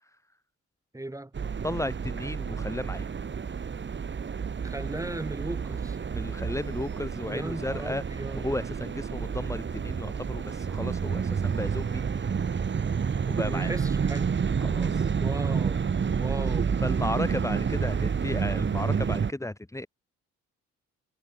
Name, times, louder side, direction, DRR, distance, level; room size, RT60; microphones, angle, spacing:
voice 1, 0.9-1.3 4.6-6.0 7.2-8.4 13.4-14.3 15.2-15.9 16.1-16.8, right 1 dB, 10° right, 4.3 m, -37 dB
sound 1, 1.3-19.3, right 6 dB, 40° right, 2.2 m, -29 dB
voice 2, 1.6-3.1 6.1-8.0 8.3-12.3 13.3-13.7 14.6-15.1 16.8-19.9, left 1 dB, 10° left, 3.5 m, -34 dB
cardioid pair, 90°, 30 cm